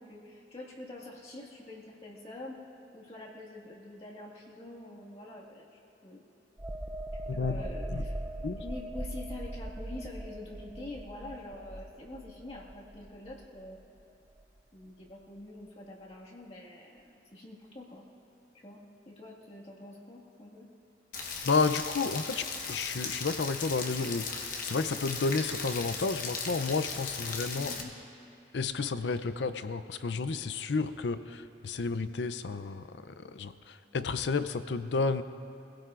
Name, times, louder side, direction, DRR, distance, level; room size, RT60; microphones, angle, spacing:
voice 1, 0.0-6.2 7.3-8.2 8.5-13.8 14.7-18.1 18.6-20.7 27.6-27.9, left 2 dB, 35° left, -4 dB, 1.9 m, -46 dB
sound 1, 6.6-14.0 14.4-14.6, right 1 dB, 15° right, 0.4 m, -40 dB
voice 2, 7.3-7.6 7.9-8.1 8.4-8.6 21.4-27.7 28.5-35.2, left 4 dB, 80° left, 12 dB, 0.5 m, -31 dB
Rain, 21.1-27.8, left 4 dB, 50° left, 1.2 m, -37 dB
24.0 x 16.5 x 2.5 m, 2.6 s
head